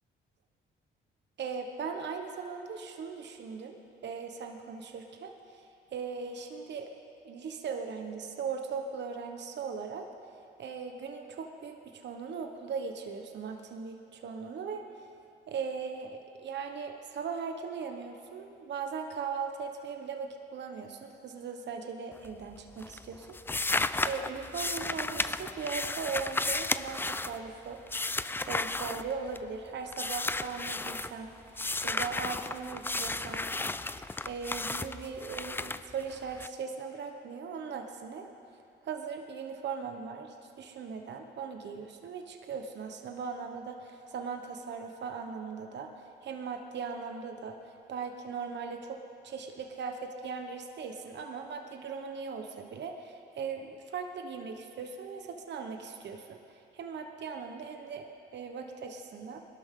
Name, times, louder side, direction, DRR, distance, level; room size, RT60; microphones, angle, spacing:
voice 1, 1.4-5.6 5.9-6.9 7.2-10.1 10.6-14.8 15.5-23.8 24.0-27.8 28.5-31.3 31.8-33.5 34.3-38.3 38.8-45.9 46.2-47.6 47.9-49.0 49.2-56.4 56.7-59.4, right 5 dB, 60° right, 4 dB, 1.2 m, -39 dB
sound 1, 22.1-22.5 22.8-29.6 29.9-31.1 31.5-36.5, left 2 dB, 10° left, 0.4 m, -34 dB
21.0 x 12.5 x 3.8 m, 2.7 s
cardioid pair, 90°, 20 cm